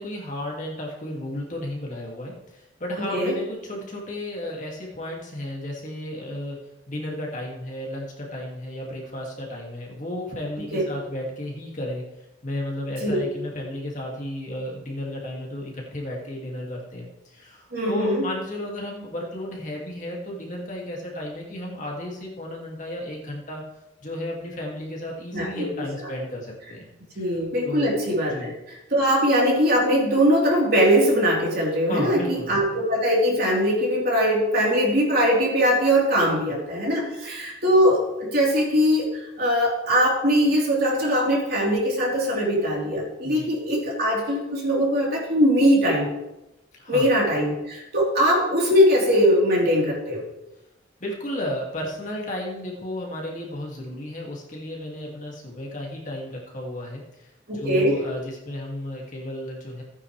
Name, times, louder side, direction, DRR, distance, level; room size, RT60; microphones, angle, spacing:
voice 1, 0.0-6.6 6.9-12.0 12.4-23.6 24.0-27.4 27.7-27.9 28.3-28.5 31.8-32.6 36.3-36.4 43.2-43.4 46.7-47.1 51.0-59.8, left 1 dB, 40° left, -2 dB, 2.2 m, -33 dB
voice 2, 3.0-3.3 10.7-10.8 13.0-13.2 17.7-18.3 25.3-26.1 27.2-28.5 28.9-39.1 39.4-46.1 46.9-50.2 57.5-58.0, equal, 50° right, -3 dB, 3.6 m, -21 dB
15.5 x 9.5 x 3.3 m, 0.93 s
head